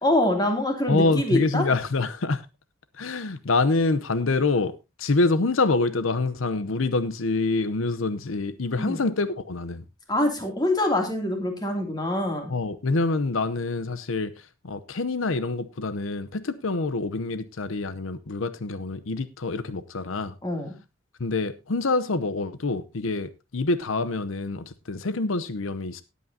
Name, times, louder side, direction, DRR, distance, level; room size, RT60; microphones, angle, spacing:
voice 1, 0.0-1.7 8.8-9.0 10.1-12.5 20.4-20.7, left 1 dB, 20° left, 2.6 m, -25 dB
voice 2, 0.9-2.4 3.0-4.7 5.0-9.8 12.5-20.3 21.2-26.0, left 3 dB, 85° left, 0.7 m, -26 dB
18.5 x 8.4 x 2.7 m
head